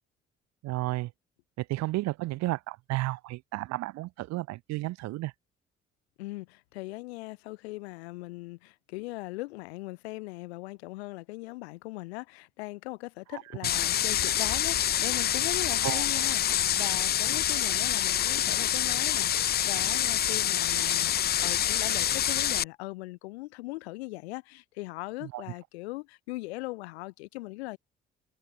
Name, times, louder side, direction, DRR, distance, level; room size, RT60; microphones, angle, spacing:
voice 1, 0.6-1.1 1.6-5.3 13.3-13.4 15.8-16.1 25.2-25.4, right 18 dB, 60° right, 0.6 m, -32 dB
voice 2, 6.2-27.8, left 21 dB, 80° left, 2.5 m, -39 dB
sound 1, 13.6-22.6, left 11 dB, 30° left, 0.4 m, -26 dB
hypercardioid pair, 45°, 32 cm